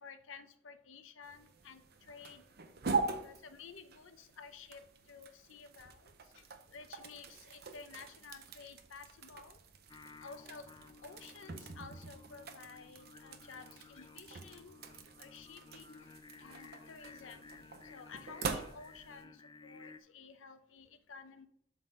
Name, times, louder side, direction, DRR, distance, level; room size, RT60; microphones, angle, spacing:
voice 1, 0.0-2.4 3.0-4.8 5.1-9.6 10.2-10.7 11.0-14.8 15.2-16.1 16.4-17.5 17.9-21.5, left 5 dB, 80° left, 9 dB, 0.7 m, -53 dB
sound 1, 1.2-19.2, right 4 dB, 50° right, 0.7 m, -44 dB
Singing, 9.9-20.0, left 4 dB, 20° left, 0.3 m, -56 dB
7.7 x 3.9 x 5.3 m, 0.70 s
head